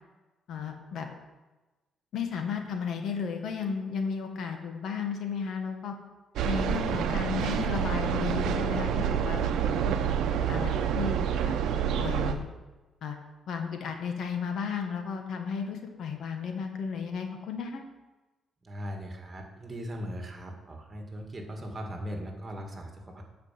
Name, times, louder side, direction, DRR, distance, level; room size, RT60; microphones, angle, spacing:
voice 1, 0.5-1.1 2.1-5.9 6.4-10.0 10.5-11.5 12.0-12.5 13.0-13.2 13.5-17.8, left 6 dB, 70° left, 4 dB, 1.4 m, -34 dB
sound 1, 6.4-12.3, right 8 dB, 80° right, 0.7 m, -28 dB
voice 2, 18.6-23.2, equal, 25° right, 2 dB, 2.0 m, -39 dB
9.3 x 5.1 x 7.6 m, 1.2 s
cardioid pair, 90°, 0 cm